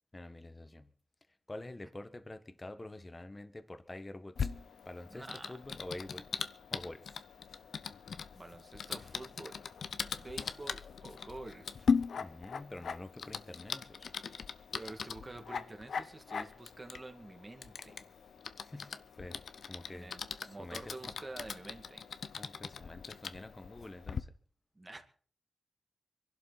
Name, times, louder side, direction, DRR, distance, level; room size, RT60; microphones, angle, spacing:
voice 1, 0.1-0.9 1.5-4.5 4.8-6.3 6.7-7.2 12.2-14.1 18.6-19.4 19.7-20.9 22.4-24.3, left 2 dB, 25° left, 1.4 m, -47 dB
Typing, 4.4-24.2, left 6 dB, 75° left, 0.7 m, -40 dB
voice 2, 5.1-5.6 8.3-9.6 10.0-11.9 14.7-18.1 19.9-22.1 24.8-25.0, right 2 dB, 25° right, 2.2 m, -48 dB
24.5 x 11.5 x 4.2 m
cardioid pair, 80°, 0 cm